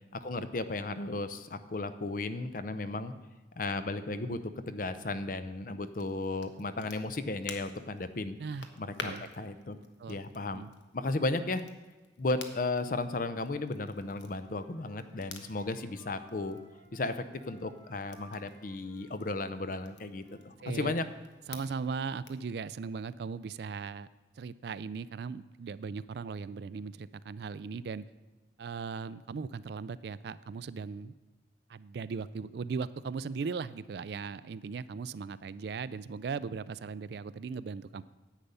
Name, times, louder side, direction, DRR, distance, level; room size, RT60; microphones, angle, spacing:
voice 1, 0.1-3.1 3.6-4.4 4.7-8.4 8.8-9.8 10.1-10.7 10.9-11.6 12.2-16.6 16.9-21.0, left 2 dB, 50° left, 12 dB, 0.6 m, -34 dB
Crackle, 5.8-22.5, left 4 dB, 85° left, 1.1 m, -51 dB
Wind instrument woodwind instrument, 13.9-20.5, equal, 30° left, 2.3 m, -60 dB
voice 2, 20.6-20.9 21.5-24.1 24.4-28.0 28.6-31.1 31.7-38.0, right 5 dB, 65° right, 16 dB, 0.3 m, -38 dB
10.0 x 8.2 x 5.5 m, 1.2 s
head